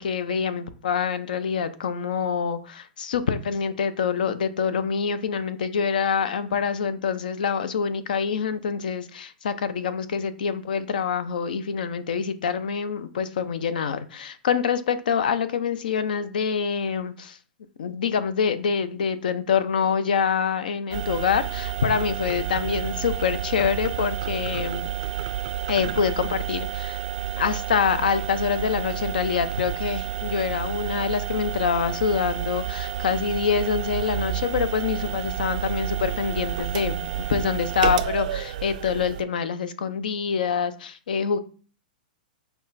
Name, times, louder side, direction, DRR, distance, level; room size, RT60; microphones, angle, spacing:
voice 1, 0.0-17.4 17.8-24.9 25.7-27.0 27.3-41.4, left 6 dB, 70° left, 0.4 m, -26 dB
sound 1, 20.9-39.2, right 11 dB, 60° right, 0.3 m, -30 dB
5.3 x 2.2 x 2.6 m
hypercardioid pair, 115°, 5 cm